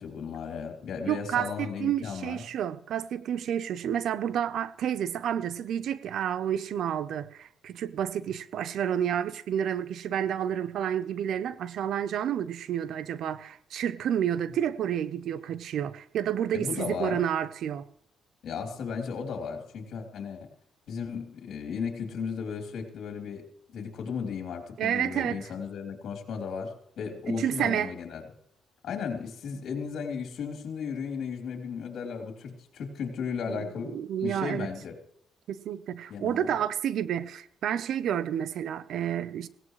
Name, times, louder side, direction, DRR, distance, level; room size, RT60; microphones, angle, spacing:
voice 1, 0.0-2.4 16.5-17.2 18.4-20.5 20.9-23.4 23.7-28.2 28.8-33.9 34.2-34.9 36.1-36.5, left 6 dB, 70° left, 3.3 m, -35 dB
voice 2, 1.1-17.8 24.8-25.4 27.3-27.9 33.5-34.7 35.5-39.5, right 9 dB, 70° right, 0.7 m, -30 dB
17.0 x 17.0 x 3.2 m
cardioid pair, 90°, 0 cm